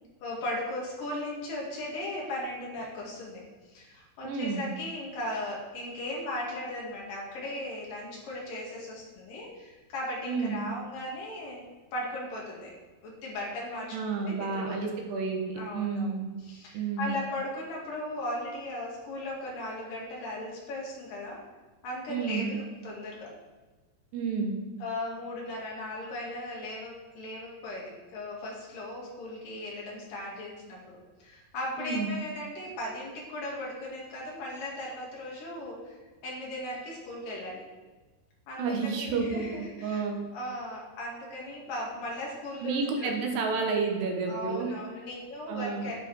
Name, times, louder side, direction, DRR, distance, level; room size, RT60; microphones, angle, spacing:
voice 1, 0.2-3.4 3.7-11.6 11.9-12.7 13.0-14.0 14.2-15.0 15.6-16.2 16.4-21.4 21.8-23.3 24.8-36.0 36.2-37.6 38.5-40.1 40.3-43.1 44.3-45.9, left 1 dB, 60° left, -3 dB, 3.6 m, -37 dB
voice 2, 4.2-4.7 10.3-10.6 13.9-16.3 16.7-17.2 22.1-22.6 24.1-24.6 31.8-32.2 38.6-40.2 42.6-44.7 45.5-45.9, right 4 dB, 80° right, 2 dB, 3.5 m, -30 dB
10.5 x 8.6 x 4.8 m, 1.2 s
omnidirectional pair, 4.7 m